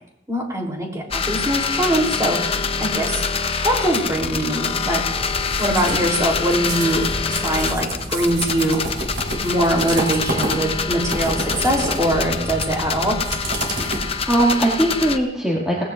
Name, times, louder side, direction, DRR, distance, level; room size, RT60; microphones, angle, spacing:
voice 1, 0.3-2.4 2.8-3.2 3.6-5.0 5.6-8.8 9.4-13.1, right 1 dB, 20° right, -1 dB, 3.4 m, -22 dB
sound 1, 1.1-15.2, left 5 dB, 35° left, 0.7 m, -25 dB
sound 2, 4.8-14.6, right 1 dB, 75° right, 3.7 m, -30 dB
voice 2, 13.8-15.8, right 1 dB, 5° right, -7 dB, 2.2 m, -20 dB
19.5 x 16.0 x 2.6 m, 0.85 s
head